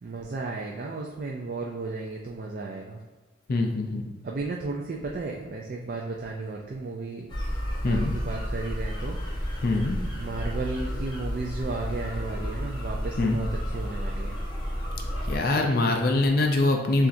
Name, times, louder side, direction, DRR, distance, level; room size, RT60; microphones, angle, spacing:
voice 1, 0.0-3.0 4.2-7.3 7.8-9.2 10.2-14.4, right 3 dB, 45° right, 0 dB, 0.3 m, -34 dB
voice 2, 3.5-4.0 7.8-8.1 9.6-10.0 13.2-13.4 15.3-17.1, left 2 dB, 45° left, 3 dB, 0.4 m, -23 dB
sound 1, 7.3-15.4, equal, 20° left, 0.8 m, -31 dB
6.9 x 2.5 x 2.6 m, 1.3 s
head